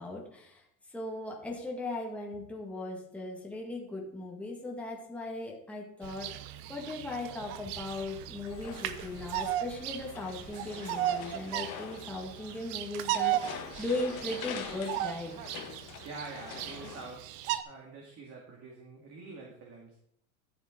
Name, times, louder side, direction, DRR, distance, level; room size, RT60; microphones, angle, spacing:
voice 1, 0.0-6.3 6.7-15.3, left 2 dB, 5° left, -2 dB, 1.9 m, -38 dB
Bird vocalization bird call bird song, 6.0-17.6, right 13 dB, 55° right, 0.9 m, -36 dB
sound 1, 8.4-17.1, left 8 dB, 45° left, 1.7 m, -45 dB
voice 2, 16.0-17.2 17.6-20.0, right 3 dB, 35° right, -1 dB, 2.2 m, -45 dB
12.5 x 7.2 x 3.9 m, 0.72 s
supercardioid pair, 130°, 42 cm